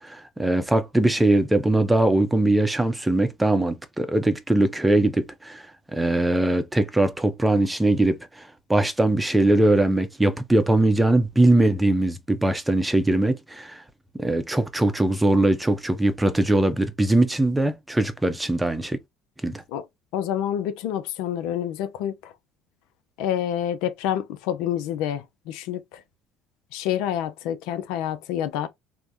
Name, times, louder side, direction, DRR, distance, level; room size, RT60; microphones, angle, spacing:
voice 1, 0.0-5.6 5.9-13.8 14.2-19.0 19.4-19.6, right 1 dB, 10° right, 0.6 m, -21 dB
voice 2, 20.1-22.3 23.2-26.0 26.7-28.7, left 10 dB, 70° left, 0.4 m, -28 dB
3.3 x 2.1 x 2.6 m
hypercardioid pair, 70°, 0 cm